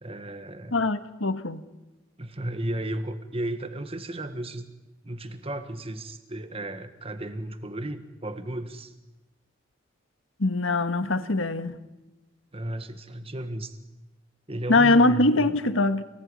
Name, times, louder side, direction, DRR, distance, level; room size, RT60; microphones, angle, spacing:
voice 1, 0.0-0.8 2.2-4.7 5.0-8.9 12.5-13.8 14.5-15.5, right 1 dB, 30° right, 1.6 m, -34 dB
voice 2, 0.7-1.6 10.4-11.7 14.7-16.0, left 2 dB, 90° left, 1.8 m, -22 dB
27.5 x 20.0 x 9.9 m
head